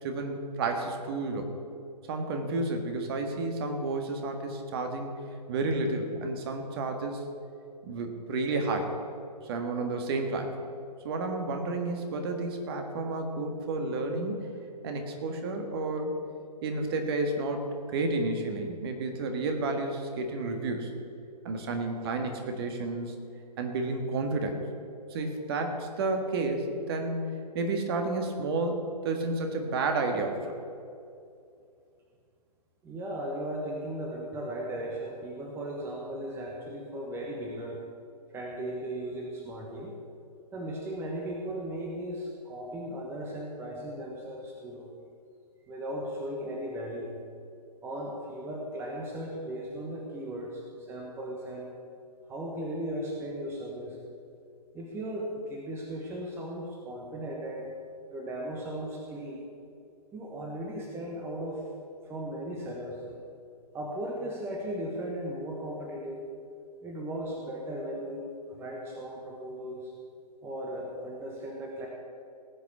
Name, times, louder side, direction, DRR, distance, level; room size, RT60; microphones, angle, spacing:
voice 1, 0.0-1.5 2.1-5.1 5.5-7.2 7.8-8.9 9.4-10.5 11.0-14.5 14.8-16.1 16.6-20.9 21.4-23.1 23.6-24.6 25.1-27.2 27.5-30.5, right 3 dB, 35° right, 4 dB, 1.7 m, -31 dB
voice 2, 32.8-37.8 38.3-39.9 40.5-44.9 45.7-47.2 47.8-51.7 52.3-54.0 54.7-57.7 58.1-59.4 60.1-61.7 62.1-63.1 63.7-66.3 66.8-69.9 70.4-71.9, right 1 dB, 10° right, -1 dB, 1.2 m, -37 dB
17.5 x 6.2 x 7.3 m, 2.4 s
figure-of-eight pair, 130°, 21 cm